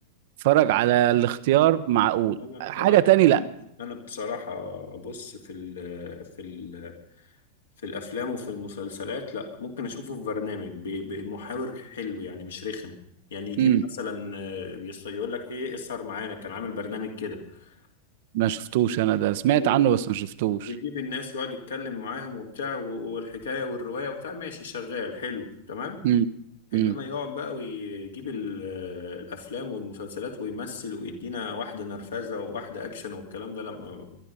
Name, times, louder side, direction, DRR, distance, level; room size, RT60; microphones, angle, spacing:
voice 1, 0.4-3.4 13.6-13.8 18.3-20.7 26.0-26.2 26.7-27.0, right 13 dB, 50° right, 13 dB, 0.8 m, -21 dB
voice 2, 2.4-3.0 3.3-3.5 3.8-6.9 7.8-12.9 13.3-17.7 19.6-19.8 20.6-26.0 26.7-34.2, left 4 dB, 65° left, 2 dB, 2.8 m, -34 dB
22.0 x 12.0 x 5.5 m, 0.73 s
figure-of-eight pair, 90°, 0 cm